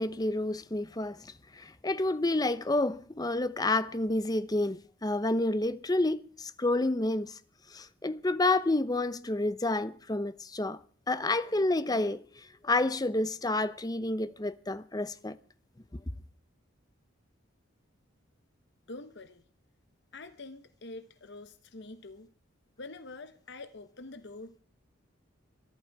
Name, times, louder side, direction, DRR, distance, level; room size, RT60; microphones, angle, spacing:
voice 1, 0.0-7.4 7.7-10.8 11.1-12.2 12.6-15.4, left 2 dB, 20° left, 0.7 m, -29 dB
voice 2, 18.9-19.4 20.1-22.3 22.8-24.6, left 2 dB, 60° left, 1.0 m, -46 dB
22.0 x 12.0 x 4.7 m
head